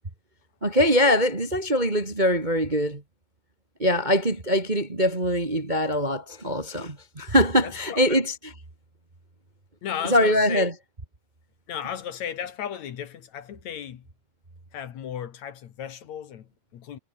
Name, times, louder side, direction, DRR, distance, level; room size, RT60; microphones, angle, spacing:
voice 1, 0.6-3.0 3.8-8.5 10.0-10.7, equal, 30° right, 0.8 m, -23 dB
voice 2, 7.6-8.2 9.8-10.7 11.7-14.0 14.7-17.0, left 9 dB, 60° left, 2.0 m, -35 dB
omnidirectional pair, 5.2 m